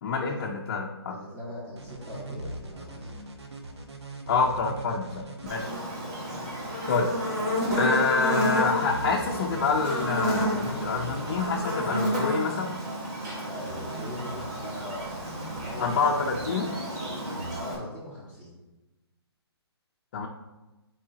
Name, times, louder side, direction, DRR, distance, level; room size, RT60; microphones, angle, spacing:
voice 1, 0.0-1.2 4.3-5.7 6.9-7.1 7.8-12.7 15.8-16.7 20.1-20.3, left 4 dB, 40° left, -1 dB, 0.6 m, -27 dB
voice 2, 1.1-3.1 13.5-15.1 15.6-15.9 17.5-18.5, left 1 dB, 25° right, -9 dB, 1.7 m, -40 dB
sound 1, 1.8-5.6 7.6-11.6 13.6-17.6, right 2 dB, 80° right, 1.1 m, -41 dB
Buzz, 5.5-17.7, equal, 40° right, 2.1 m, -31 dB
8.5 x 4.7 x 2.8 m, 1.1 s
hypercardioid pair, 155°, 14 cm